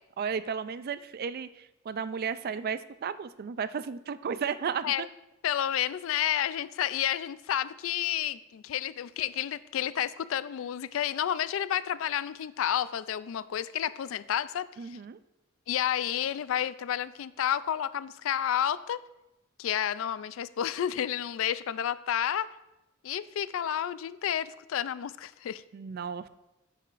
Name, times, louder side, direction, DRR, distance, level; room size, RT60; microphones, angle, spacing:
voice 1, 0.2-5.1 14.8-15.2 25.7-26.3, right 6 dB, 45° right, 14 dB, 0.3 m, -34 dB
voice 2, 5.4-15.0 15.7-19.0 19.6-22.5 23.0-25.6, left 10 dB, 70° left, 17 dB, 0.3 m, -30 dB
9.9 x 9.1 x 2.5 m, 0.96 s
head